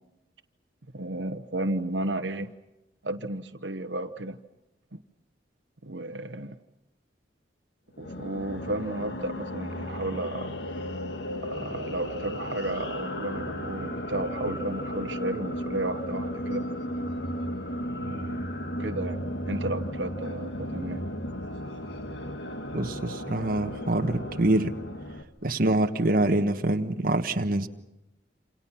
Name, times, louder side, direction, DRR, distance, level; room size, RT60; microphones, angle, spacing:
voice 1, 0.9-2.5 3.0-4.4 4.9-5.0 5.8-6.5 8.0-10.6 11.4-16.6 18.0-18.4 18.8-21.0, right 2 dB, 90° right, 8 dB, 1.2 m, -33 dB
sound 1, 7.9-25.2, equal, 80° left, 1.8 m, -34 dB
voice 2, 22.7-24.7 25.4-27.7, right 1 dB, 55° right, 5 dB, 1.4 m, -25 dB
28.0 x 27.5 x 5.8 m, 0.95 s
head